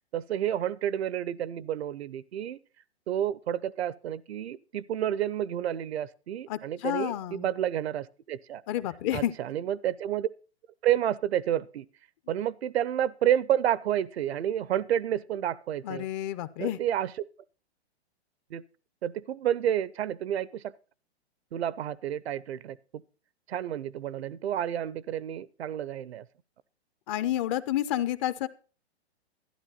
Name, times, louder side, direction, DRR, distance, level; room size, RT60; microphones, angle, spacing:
voice 1, 0.1-2.6 3.1-8.6 9.1-10.3 10.8-11.9 12.3-16.1 16.6-17.1 18.5-18.6 19.0-20.7 21.5-23.0 23.5-26.2, right 11 dB, 70° right, 0.7 m, -30 dB
voice 2, 6.5-7.5 8.7-9.3 15.8-16.8 27.1-28.5, left 13 dB, 30° left, 0.5 m, -30 dB
12.5 x 10.5 x 4.0 m
hypercardioid pair, 135°, 33 cm